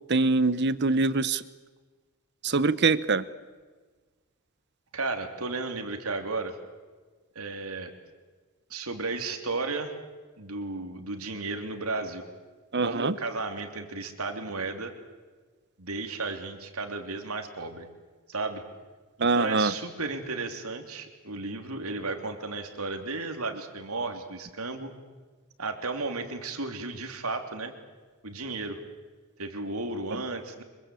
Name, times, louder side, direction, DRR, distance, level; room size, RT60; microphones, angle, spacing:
voice 1, 0.1-1.4 2.4-3.2 12.7-13.1 19.2-19.7, right 3 dB, 50° right, 16 dB, 1.0 m, -24 dB
voice 2, 4.9-6.6 7.3-7.9 8.7-9.9 10.4-12.3 12.8-14.9 15.8-17.9 18.3-18.6 19.2-24.9 25.6-27.7 28.2-28.8 29.4-30.6, right 3 dB, 80° right, 6 dB, 3.3 m, -34 dB
25.5 x 23.5 x 8.4 m, 1.4 s
head